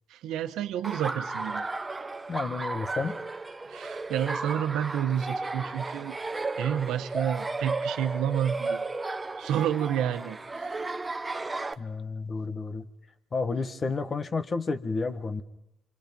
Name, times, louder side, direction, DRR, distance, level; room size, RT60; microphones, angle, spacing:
voice 1, 0.1-1.6 3.7-6.2 6.6-8.8 9.4-10.4, right 9 dB, 90° right, 1.2 m, -29 dB
Laughter, 0.8-11.7, right 3 dB, 20° right, 1.1 m, -34 dB
voice 2, 2.3-3.2 11.8-12.9 13.3-15.4, left 4 dB, 35° left, 1.5 m, -31 dB
28.0 x 25.5 x 5.4 m
cardioid pair, 90°, 0 cm